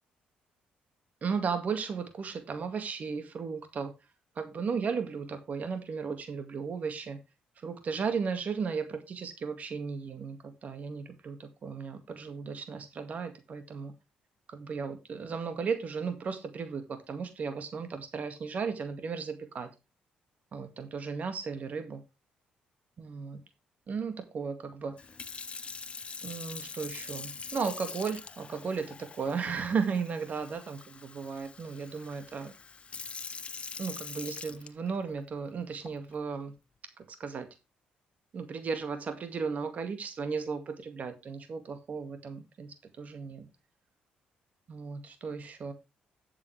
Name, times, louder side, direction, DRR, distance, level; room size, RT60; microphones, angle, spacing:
voice 1, 1.2-3.9 4.4-7.2 7.6-13.9 14.5-19.7 20.5-22.0 23.0-23.4 23.9-24.9 26.2-32.5 33.8-36.5 37.2-37.5 38.3-42.7 43.0-43.5 44.7-45.7, right 5 dB, 50° right, 2.1 m, -35 dB
Sink (filling or washing) / Fill (with liquid), 25.0-35.2 35.9-36.1, left 5 dB, 35° left, 1.1 m, -44 dB
12.5 x 7.6 x 3.4 m
supercardioid pair, 75°, 3 cm